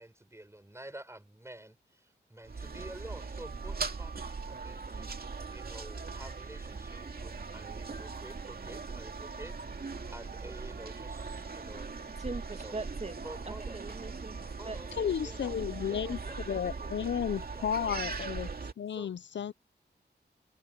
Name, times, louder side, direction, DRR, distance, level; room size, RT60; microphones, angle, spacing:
voice 1, 0.0-11.9 12.5-12.8 13.2-13.8 14.6-18.0 18.9-19.1, right 1 dB, 15° right, 4.6 m, -50 dB
sound 1, 2.4-18.7, right 4 dB, 55° right, 2.4 m, -40 dB
voice 2, 12.2-13.2 13.5-15.1, right 3 dB, 40° right, 2.1 m, -41 dB
voice 3, 15.0-16.2 16.5-18.5 18.8-19.5, left 8 dB, 85° left, 0.6 m, -33 dB
wide cardioid pair, 85°, 18 cm